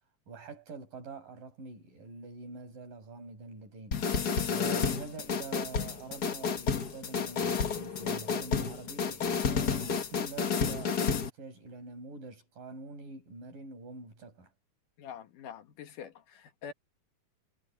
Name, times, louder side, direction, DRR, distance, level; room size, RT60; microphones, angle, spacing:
voice 1, 0.3-4.0 4.5-14.5, right 3 dB, 90° right, 8.8 m, -45 dB
sound 1, 3.9-11.3, left 6 dB, 45° left, 1.4 m, -30 dB
voice 2, 15.0-16.7, left 8 dB, 75° left, 3.2 m, -45 dB
omnidirectional pair, 3.7 m